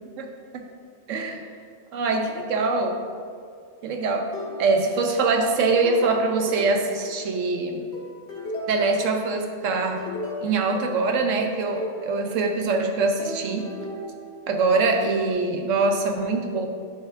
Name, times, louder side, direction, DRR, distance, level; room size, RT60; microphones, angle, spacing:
voice 1, 0.2-0.7 1.1-1.5 1.9-3.0 3.8-7.9 8.7-10.0 10.4-13.7 14.5-16.7, right 3 dB, 75° right, 4 dB, 1.0 m, -24 dB
sound 1, 4.3-5.1 5.8-7.5 7.9-9.1 9.6-12.1 13.2-15.0, left 1 dB, 60° left, 1.8 m, -36 dB
9.9 x 6.6 x 2.5 m, 2.2 s
omnidirectional pair, 1.3 m